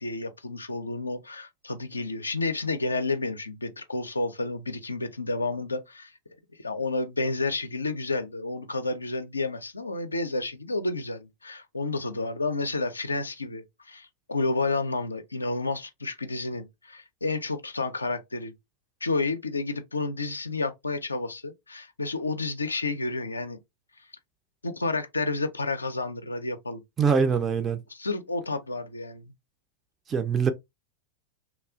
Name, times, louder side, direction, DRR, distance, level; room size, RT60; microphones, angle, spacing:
voice 1, 0.0-6.1 6.6-18.5 19.0-23.6 24.6-26.8 27.9-29.3, left 3 dB, 80° left, 0.4 m, -30 dB
voice 2, 27.0-27.8 30.1-30.5, right 6 dB, 20° right, 0.4 m, -23 dB
3.1 x 2.3 x 2.4 m
figure-of-eight pair, 90°, 0 cm